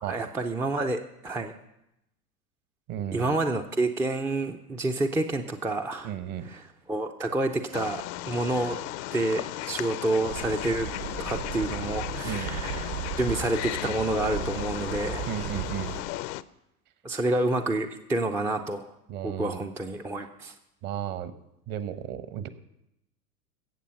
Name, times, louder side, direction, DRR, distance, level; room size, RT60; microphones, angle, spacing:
voice 1, 0.0-1.5 3.1-6.1 6.5-6.6 6.9-8.8 9.1-10.9 11.2-15.3 17.0-18.9 19.2-20.5, right 2 dB, 5° right, 5 dB, 0.4 m, -29 dB
voice 2, 2.9-3.3 6.0-6.5 12.2-12.6 15.3-15.9 19.1-19.7 20.8-21.3 21.7-22.5, right 10 dB, 45° right, 12 dB, 1.1 m, -34 dB
Wild animals, 7.7-16.4, left 16 dB, 50° left, 0.6 m, -35 dB
sound 1, 10.2-16.0, right 8 dB, 75° right, 5.4 m, -36 dB
16.5 x 7.2 x 5.7 m, 0.85 s
hypercardioid pair, 95°, 46 cm